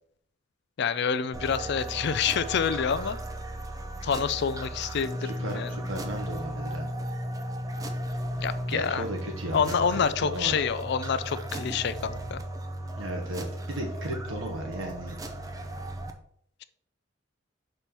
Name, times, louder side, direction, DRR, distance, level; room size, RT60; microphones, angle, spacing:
voice 1, 0.8-3.2 4.0-5.7 8.4-9.0 9.5-12.4, left 6 dB, 60° left, 13 dB, 0.4 m, -27 dB
sound 1, 1.3-16.1, right 1 dB, 20° right, 0.5 m, -36 dB
voice 2, 5.2-6.9 8.7-10.6 13.0-15.2, right 1 dB, 75° right, 1 dB, 1.1 m, -35 dB
5.4 x 4.4 x 4.4 m, 0.66 s
head